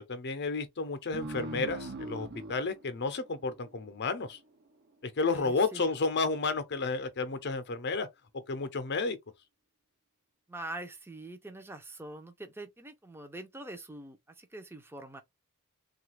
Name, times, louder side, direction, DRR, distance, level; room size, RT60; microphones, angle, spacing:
voice 1, 0.0-4.4 5.0-8.1 8.5-9.2, left 3 dB, 50° left, 0.7 m, -32 dB
sound 1, 1.1-4.3, right 2 dB, 50° right, 0.6 m, -41 dB
voice 2, 5.3-5.8 10.5-15.2, right 2 dB, 10° right, 0.6 m, -44 dB
3.2 x 2.4 x 3.2 m
head